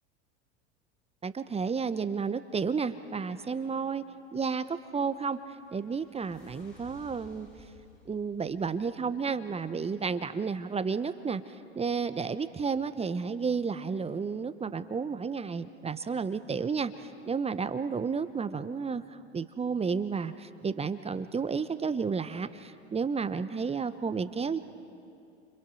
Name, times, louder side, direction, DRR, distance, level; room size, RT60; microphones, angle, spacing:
voice 1, 1.2-4.1 4.3-5.4 5.7-7.5 8.1-24.6, right 5 dB, 20° right, 12 dB, 0.9 m, -32 dB
sound 1, 4.6-9.5, left 3 dB, 85° left, 6.8 m, -57 dB
30.0 x 26.0 x 6.4 m, 2.6 s
hypercardioid pair, 85°, 34 cm